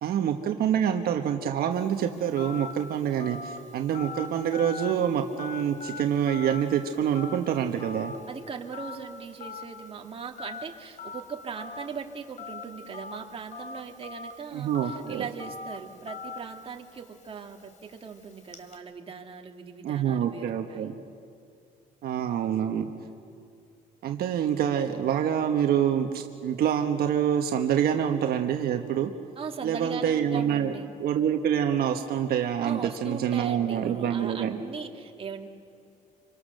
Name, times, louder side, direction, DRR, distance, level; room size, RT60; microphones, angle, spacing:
voice 1, 0.0-8.1 14.5-15.2 19.8-20.9 22.0-22.9 24.0-29.1 29.6-30.7 31.0-34.6, right 9 dB, 65° right, 4 dB, 1.3 m, -26 dB
Telephone, 1.7-18.8, left 4 dB, 45° left, 2.9 m, -43 dB
voice 2, 8.3-20.9 29.4-30.9 32.6-35.5, right 6 dB, 35° right, 3 dB, 2.0 m, -39 dB
27.0 x 24.5 x 6.6 m, 2.4 s
cardioid pair, 110°, 17 cm